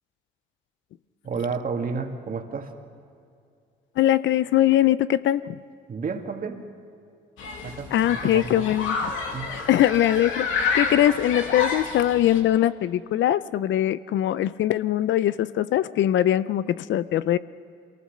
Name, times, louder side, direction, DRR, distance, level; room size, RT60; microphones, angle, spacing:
voice 1, 1.2-2.7 5.9-6.6 7.6-8.7 9.3-9.5, right 5 dB, 45° right, 4 dB, 2.1 m, -31 dB
voice 2, 4.0-5.6 7.9-9.1 9.7-17.4, left 12 dB, 70° left, 16 dB, 0.5 m, -22 dB
Human group actions, 7.4-12.4, left 5 dB, 90° left, 2.3 m, -29 dB
24.0 x 18.5 x 6.6 m, 2.4 s
cardioid pair, 90°, 20 cm